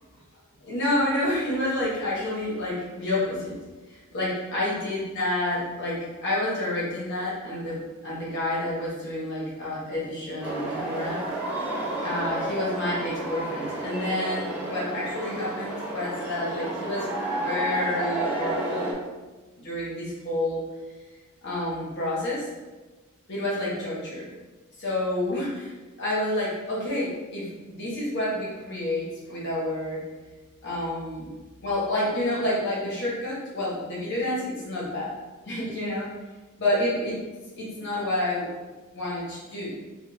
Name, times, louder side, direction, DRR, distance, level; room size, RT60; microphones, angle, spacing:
voice 1, 0.6-3.5 3.9-11.2 12.0-19.0 19.6-20.6 21.4-22.5 23.3-24.3 24.8-30.0 30.6-31.3 31.6-35.1 35.5-36.1 36.6-37.2 37.6-38.5 38.9-39.7, left 1 dB, 50° left, -6 dB, 0.9 m, -29 dB
sound 1, 10.4-18.9, right 1 dB, 5° right, 0.7 m, -31 dB
3.3 x 2.2 x 3.2 m, 1.2 s
head